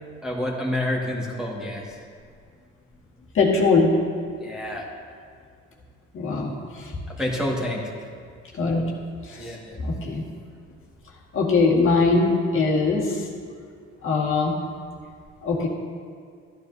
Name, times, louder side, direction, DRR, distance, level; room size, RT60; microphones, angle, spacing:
voice 1, 0.2-1.8 4.4-4.8 7.2-7.8 9.4-9.8, left 1 dB, ahead, -5 dB, 1.8 m, -28 dB
voice 2, 3.3-3.9 6.1-6.9 8.5-8.8 9.3-9.5 9.8-10.2 11.3-13.2 14.0-14.5 15.4-15.7, left 4 dB, 45° left, -3 dB, 1.9 m, -21 dB
13.5 x 9.8 x 2.8 m, 2.1 s
supercardioid pair, 90°, 30 cm